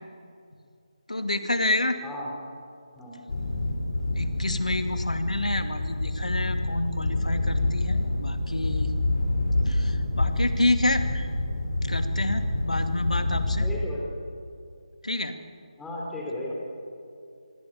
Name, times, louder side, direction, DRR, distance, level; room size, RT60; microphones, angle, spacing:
voice 1, 1.1-2.0 4.2-8.9 9.7-11.3 11.8-13.7 15.0-15.4, left 1 dB, 80° left, 7 dB, 2.4 m, -28 dB
voice 2, 2.0-2.3 2.9-3.4 13.6-14.0 15.8-16.5, left 1 dB, 5° left, -4 dB, 4.6 m, -35 dB
sound 1, 3.3-13.8, left 2 dB, 60° left, 5.2 m, -27 dB
25.5 x 23.5 x 7.9 m, 2.4 s
figure-of-eight pair, 155°, 4 cm